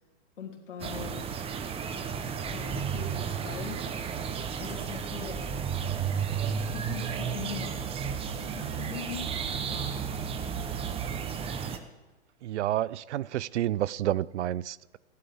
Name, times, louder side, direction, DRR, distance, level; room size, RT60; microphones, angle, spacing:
voice 1, 0.4-1.3 2.5-3.9 4.6-5.5 6.4-8.0 8.4-10.1, left 6 dB, 80° left, 3.3 m, -42 dB
sound 1, 0.8-11.8, right 7 dB, 15° right, 0.8 m, -33 dB
voice 2, 12.4-15.0, right 13 dB, 70° right, 0.5 m, -30 dB
26.5 x 11.5 x 3.6 m
hypercardioid pair, 125°, 36 cm